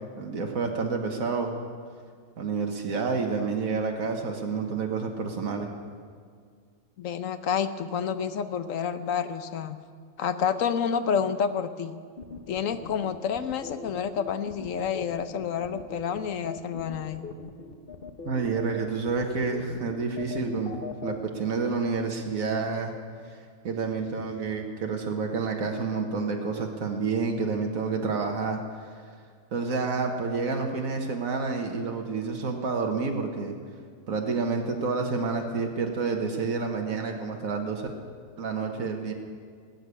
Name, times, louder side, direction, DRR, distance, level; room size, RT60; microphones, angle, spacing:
voice 1, 0.0-1.5 2.4-5.7 18.2-22.9 23.3-28.6 29.5-33.6 34.1-37.9 38.4-39.1, right 4 dB, 90° right, 2 dB, 1.6 m, -29 dB
voice 2, 7.0-9.8 10.2-12.0 12.5-17.3, left 7 dB, 75° left, 10 dB, 1.1 m, -29 dB
sound 1, 12.2-21.2, left 5 dB, 45° left, 1.1 m, -40 dB
19.0 x 6.8 x 9.7 m, 2.1 s
omnidirectional pair, 1.4 m